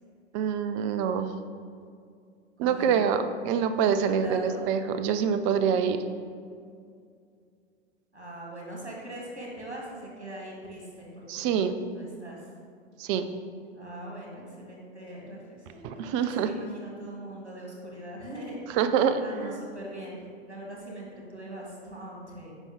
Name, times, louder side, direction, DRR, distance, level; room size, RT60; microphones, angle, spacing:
voice 1, 0.3-1.3 2.6-6.0 11.3-11.8 13.0-13.3 15.8-16.5 18.7-19.6, right 7 dB, 30° right, 10 dB, 0.4 m, -26 dB
voice 2, 2.6-3.0 4.0-4.7 8.1-11.6 12.0-12.4 13.7-18.6 19.2-22.5, right 1 dB, 80° right, -2 dB, 1.9 m, -41 dB
8.0 x 5.3 x 3.6 m, 2.3 s
figure-of-eight pair, 90°, 33 cm